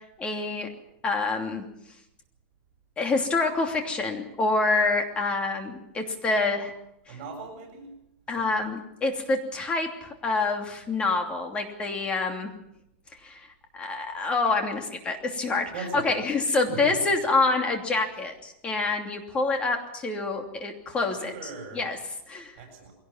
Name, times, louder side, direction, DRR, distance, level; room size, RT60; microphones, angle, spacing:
voice 1, 0.2-0.7 1.0-1.6 3.0-6.7 7.1-7.2 8.3-12.5 13.2-13.5 13.7-22.0 22.3-22.5, left 3 dB, 15° left, 4 dB, 2.9 m, -27 dB
voice 2, 7.1-7.9 8.4-8.7 15.7-16.2 16.7-17.0 21.1-21.8 22.5-22.9, right 3 dB, 50° right, 2 dB, 7.7 m, -39 dB
22.0 x 18.0 x 7.3 m, 0.83 s
supercardioid pair, 160°, 7 cm